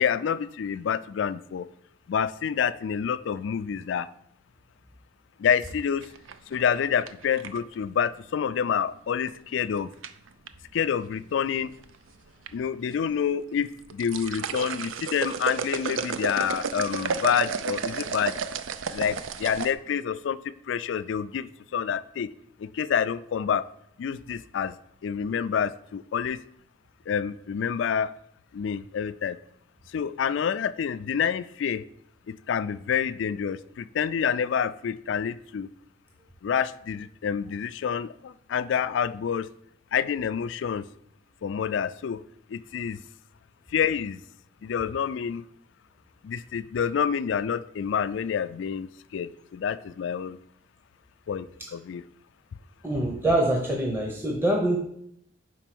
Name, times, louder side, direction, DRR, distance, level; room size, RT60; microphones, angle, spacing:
voice 1, 0.0-1.7 2.1-4.1 5.4-6.1 6.5-9.9 10.7-11.7 12.5-18.4 18.9-22.3 22.6-23.7 24.0-24.8 25.0-26.4 27.1-28.1 28.5-29.4 29.9-31.8 32.3-35.7 36.4-39.5 39.9-40.9 41.4-42.2 42.5-43.0 43.7-44.2 44.6-45.4 46.2-50.4 51.3-52.0, left 7 dB, 70° left, 15 dB, 0.3 m, -28 dB
sound 1, 5.6-7.7 9.3-9.6 10.0-10.5 11.4-12.0 12.3-12.5 12.9-13.0 13.7-19.7, right 5 dB, 85° right, 0.4 m, -32 dB
voice 2, 52.8-54.8, right 1 dB, 10° right, 0 dB, 0.7 m, -24 dB
5.3 x 4.5 x 5.9 m, 0.71 s
head